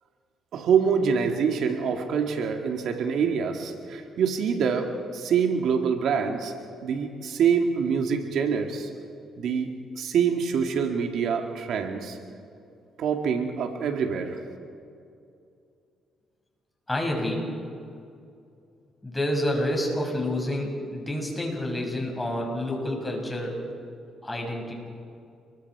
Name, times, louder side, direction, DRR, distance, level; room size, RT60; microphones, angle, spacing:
voice 1, 0.5-6.5 6.8-8.9 9.4-9.7 10.0-12.2 13.0-14.4, right 6 dB, 75° right, 4 dB, 2.1 m, -25 dB
voice 2, 16.9-17.5 19.0-23.6 24.2-24.7, left 1 dB, 15° left, 0 dB, 6.6 m, -28 dB
29.5 x 22.5 x 4.8 m, 2.5 s
cardioid pair, 90°, 0 cm